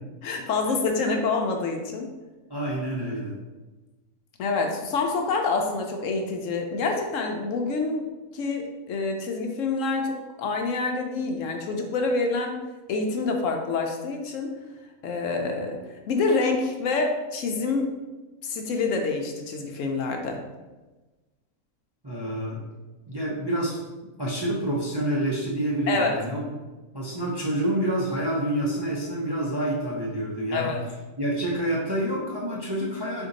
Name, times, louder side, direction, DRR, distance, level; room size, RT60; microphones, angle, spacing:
voice 1, 0.2-2.1 4.4-8.1 8.3-12.6 12.9-14.5 15.0-15.8 16.1-17.9 18.4-20.4 25.9-26.2 30.5-30.9, left 3 dB, 70° left, 3 dB, 0.9 m, -27 dB
voice 2, 2.5-3.3 22.0-22.6 23.1-23.8 24.2-26.5 26.9-30.7 31.2-33.3, right 1 dB, 40° right, -5 dB, 0.3 m, -28 dB
4.3 x 2.6 x 3.9 m, 1.2 s
omnidirectional pair, 1.5 m